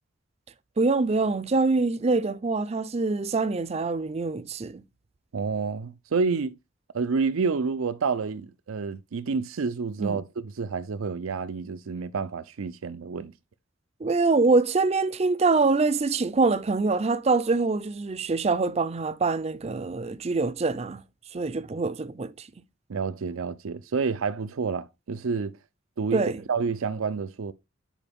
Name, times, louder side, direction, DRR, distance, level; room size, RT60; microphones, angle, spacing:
voice 1, 0.8-4.8 10.0-10.2 14.0-21.0 21.3-22.5 26.1-26.4, right 3 dB, 30° right, 0.5 m, -24 dB
voice 2, 5.3-6.5 6.9-13.3 22.9-25.5 26.0-26.2 26.5-27.5, right 5 dB, 85° right, 0.5 m, -29 dB
9.1 x 4.5 x 3.5 m
head